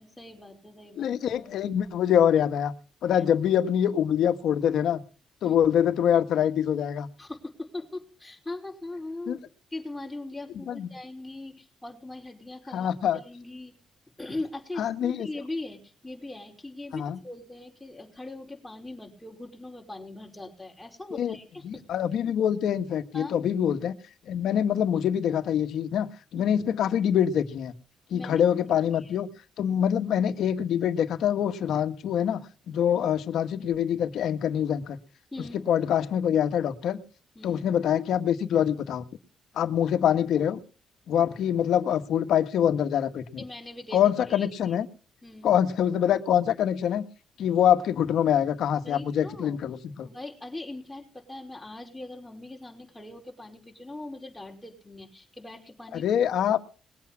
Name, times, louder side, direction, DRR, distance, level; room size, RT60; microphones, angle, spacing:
voice 1, 0.0-1.2 3.1-3.2 5.4-5.6 7.2-9.4 9.7-13.8 14.2-21.9 23.1-23.4 26.4-26.5 28.1-28.4 28.9-29.1 35.3-35.6 37.4-37.6 39.8-39.9 43.4-44.0 44.3-44.7 45.2-45.5 48.8-49.6 50.0-56.0, left 2 dB, 10° left, 0 dB, 5.4 m, -40 dB
voice 2, 1.0-2.7 3.0-5.0 5.4-7.1 9.3-9.4 10.7-10.9 12.7-13.2 14.8-15.3 16.9-17.2 21.1-21.4 21.6-23.9 24.3-26.1 26.3-27.7 28.1-29.3 29.6-32.4 32.7-35.0 35.7-37.0 37.4-39.0 39.5-40.6 41.1-43.4 43.9-44.9 45.4-47.0 47.4-50.1 55.9-56.6, left 9 dB, 75° left, 7 dB, 1.6 m, -25 dB
21.0 x 8.5 x 5.9 m, 0.39 s
cardioid pair, 90°, 0 cm